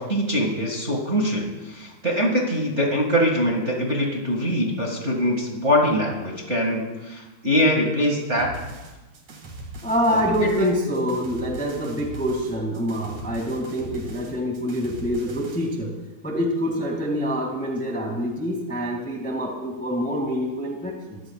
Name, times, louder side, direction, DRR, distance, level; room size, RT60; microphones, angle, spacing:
voice 1, 0.0-8.5 10.1-10.7, equal, 30° right, -1 dB, 1.3 m, -23 dB
sound 1, 8.4-15.7, right 1 dB, 50° right, 3.2 m, -40 dB
voice 2, 9.8-15.9 16.2-21.2, equal, 5° left, 0 dB, 0.6 m, -26 dB
23.0 x 14.5 x 2.4 m, 1.1 s
omnidirectional pair, 4.4 m